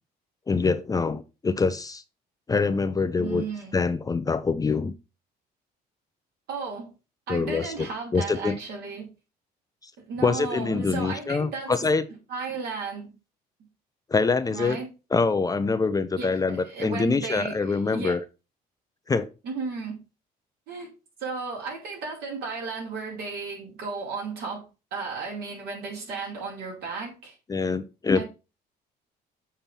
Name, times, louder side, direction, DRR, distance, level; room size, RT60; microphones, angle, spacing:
voice 1, 0.5-2.0 2.5-3.4 3.7-4.9 7.3-8.6 9.8-9.9 10.2-12.1 14.1-14.8 15.1-18.2 19.1-19.3 27.5-28.2, left 4 dB, 20° left, 0.6 m, -25 dB
voice 2, 3.2-3.8 6.5-6.9 7.3-9.1 10.1-11.7 12.3-13.1 14.5-14.9 16.2-18.2 19.4-20.0 20.7-20.9 21.2-27.4 28.1-28.2, right 4 dB, 70° right, 5.1 m, -34 dB
7.2 x 4.4 x 5.5 m
cardioid pair, 110°, 17 cm